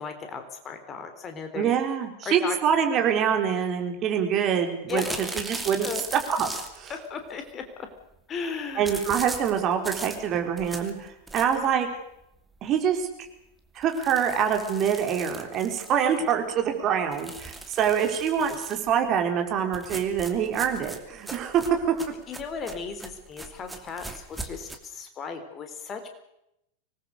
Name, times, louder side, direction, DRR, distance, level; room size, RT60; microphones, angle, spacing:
voice 1, 0.0-1.8 2.3-2.6 4.9-5.5 5.8-6.0 6.9-7.9 8.3-9.0 22.3-26.1, left 5 dB, 25° left, 7 dB, 3.7 m, -36 dB
voice 2, 1.5-5.0 5.4-6.5 6.7-6.9 8.8-11.9 12.6-13.1 13.7-22.0, right 8 dB, 35° right, 4 dB, 4.1 m, -25 dB
sound 1, 4.9-7.0 8.8-11.8 12.2-12.3 12.6-12.7 13.0-13.1 13.8-16.3 17.1-18.9 19.7-24.8, right 2 dB, 5° right, 2.8 m, -39 dB
25.5 x 20.0 x 6.8 m, 0.81 s
figure-of-eight pair, 90°, 0 cm